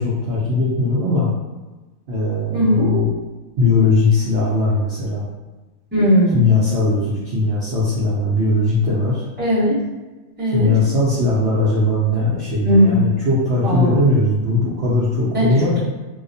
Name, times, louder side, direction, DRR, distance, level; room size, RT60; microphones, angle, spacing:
voice 1, 0.0-1.3 2.1-3.1 3.6-5.3 6.3-9.2 10.5-15.8, left 2 dB, 60° right, -7 dB, 0.7 m, -19 dB
voice 2, 2.5-2.9 5.9-6.5 9.4-9.8 10.4-10.7 12.6-13.1 13.6-13.9 15.3-15.8, equal, 10° right, -10 dB, 0.8 m, -17 dB
2.3 x 2.1 x 2.5 m, 1.2 s
omnidirectional pair, 1.4 m